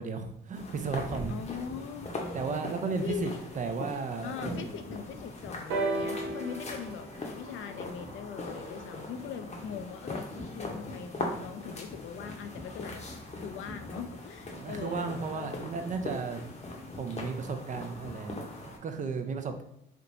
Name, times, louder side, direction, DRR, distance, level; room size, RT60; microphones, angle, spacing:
voice 1, 0.0-1.4 2.3-3.3 3.6-4.8 14.5-16.4 17.0-19.6, right 5 dB, 40° right, 6 dB, 0.4 m, -34 dB
sound 1, 0.5-18.8, left 2 dB, 35° left, 0.7 m, -40 dB
voice 2, 1.3-2.1 2.9-3.4 4.2-10.3 10.5-13.0 13.4-15.1 15.3-15.5, left 8 dB, 80° left, 8 dB, 0.4 m, -41 dB
sound 2, 5.7-9.5 10.5-10.6, right 2 dB, 85° right, 0.8 m, -36 dB
3.4 x 2.8 x 2.5 m, 0.82 s
cardioid pair, 90°, 20 cm